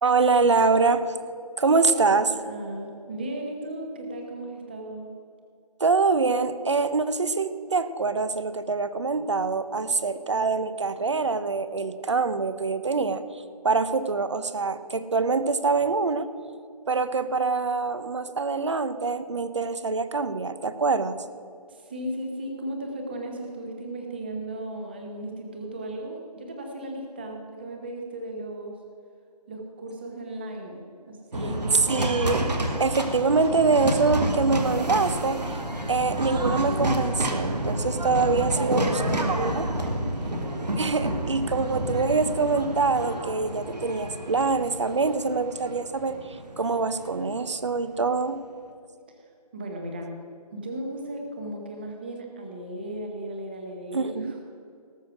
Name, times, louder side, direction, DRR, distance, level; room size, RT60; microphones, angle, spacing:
voice 1, 0.0-1.1 1.6-2.3 5.8-13.2 13.6-16.3 16.9-21.2 31.9-35.6 35.9-38.9 39.2-39.7 40.8-46.2 46.6-48.4 53.9-54.3, right 4 dB, 45° right, 13 dB, 0.8 m, -24 dB
voice 2, 1.8-5.1 21.7-28.8 29.5-32.1 38.5-40.4 49.1-50.2 50.5-54.4, right 1 dB, 15° right, 2 dB, 1.0 m, -36 dB
sound 1, 31.3-47.5, right 1 dB, 90° right, 2.3 m, -29 dB
19.0 x 6.4 x 6.0 m, 2.3 s
figure-of-eight pair, 170°, 20 cm